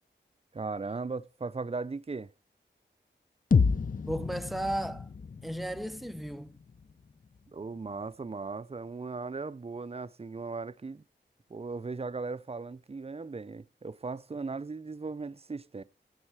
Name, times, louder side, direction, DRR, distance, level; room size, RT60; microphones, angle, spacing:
voice 1, 0.5-2.3 7.5-11.0 11.5-15.8, right 4 dB, 30° right, 0.5 m, -37 dB
sound 1, 3.5-7.5, left 5 dB, 45° left, 0.7 m, -30 dB
voice 2, 4.1-5.1 5.4-6.5, right 1 dB, ahead, 0.8 m, -34 dB
15.0 x 5.4 x 4.8 m
wide cardioid pair, 65°, 19 cm